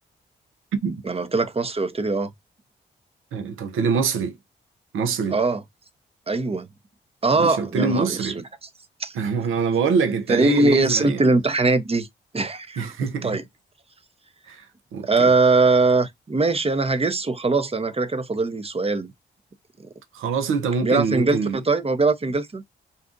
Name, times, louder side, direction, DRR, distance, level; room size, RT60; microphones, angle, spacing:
voice 1, 1.1-2.3 5.3-5.6 6.3-6.7 7.2-8.3 9.0-9.2 10.3-12.1 12.3-12.9 13.2-13.4 15.0-19.1 20.8-22.6, right 3 dB, 30° right, 0.7 m, -21 dB
voice 2, 3.3-4.4 4.9-5.4 7.3-8.4 9.1-11.2 12.8-13.4 14.5-14.7 14.9-15.3 20.1-21.6, right 5 dB, 80° right, 0.7 m, -24 dB
2.6 x 2.4 x 3.7 m
supercardioid pair, 50°, 21 cm